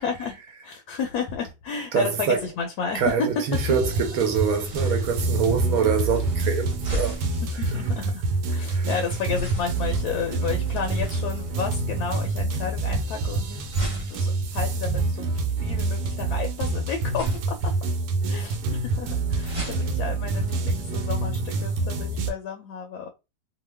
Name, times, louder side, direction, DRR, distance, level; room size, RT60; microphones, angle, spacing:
voice 1, 0.0-3.1 4.8-5.0 5.8-5.9 6.8-7.1 7.4-13.7 14.1-15.3 15.6-17.7 18.3-23.1, left 6 dB, 75° left, 1.1 m, -32 dB
voice 2, 1.9-2.4 2.9-7.4 7.7-7.8 8.7-8.9, right 6 dB, 65° right, 1.1 m, -25 dB
sound 1, 3.5-22.3, right 3 dB, 85° right, 1.2 m, -27 dB
sound 2, 4.6-21.4, equal, 30° right, 0.7 m, -40 dB
2.9 x 2.1 x 3.2 m
omnidirectional pair, 1.7 m